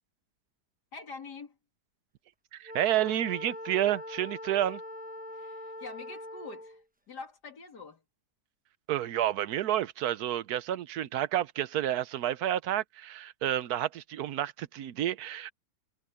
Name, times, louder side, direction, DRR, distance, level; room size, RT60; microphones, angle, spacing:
voice 1, 0.9-1.6 5.3-6.8 7.1-8.0, left 4 dB, 85° left, 3.3 m, -45 dB
voice 2, 2.5-4.8 8.9-15.5, right 12 dB, 75° right, 1.2 m, -30 dB
Wind instrument woodwind instrument, 2.6-6.8, left 1 dB, 10° right, 0.5 m, -42 dB
omnidirectional pair, 1.7 m